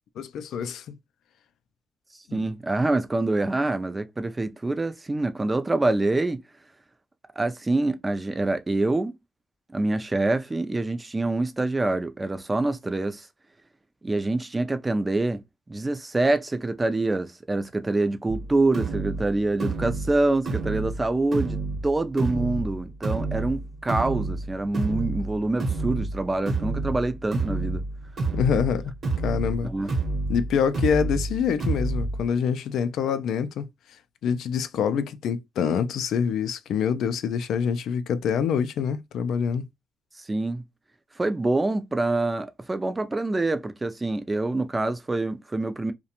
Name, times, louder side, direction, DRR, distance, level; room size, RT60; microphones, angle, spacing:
voice 1, 0.2-1.0 2.3-2.4 28.3-28.9 29.2-29.7 30.3-33.7 34.2-39.6, left 7 dB, 75° left, 0.3 m, -26 dB
voice 2, 2.3-6.4 7.4-9.2 9.7-13.3 14.0-15.4 15.7-21.6 21.8-27.9 29.6-29.9 40.2-40.6 41.2-45.9, right 2 dB, 20° right, 0.4 m, -26 dB
sound 1, 18.3-32.3, right 3 dB, 45° right, 0.8 m, -30 dB
2.4 x 2.1 x 2.8 m
cardioid pair, 90°, 0 cm